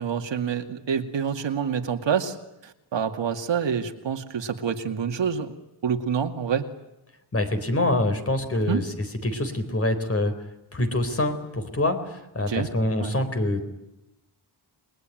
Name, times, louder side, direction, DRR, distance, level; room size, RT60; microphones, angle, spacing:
voice 1, 0.0-2.4 2.6-5.5 5.8-6.7 8.7-8.8 12.5-12.7 13.0-13.1, right 7 dB, 80° right, 5 dB, 2.4 m, -27 dB
voice 2, 7.3-8.9 9.2-10.3 10.7-13.6, left 1 dB, 30° left, 7 dB, 4.1 m, -25 dB
29.0 x 21.5 x 9.2 m, 0.90 s
wide cardioid pair, 160°, 44 cm